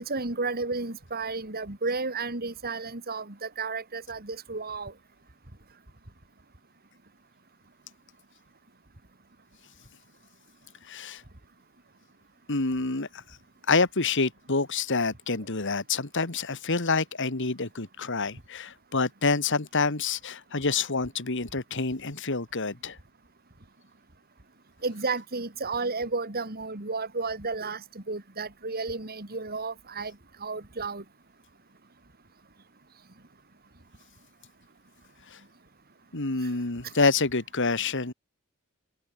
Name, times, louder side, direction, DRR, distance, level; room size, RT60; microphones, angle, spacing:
voice 1, 0.0-4.9 24.8-30.1 30.4-31.0, right 3 dB, 45° right, 2.8 m, -32 dB
voice 2, 10.9-11.2 12.5-13.2 13.7-23.0 35.3-35.4 36.1-38.1, left 4 dB, 60° left, 2.2 m, -27 dB
head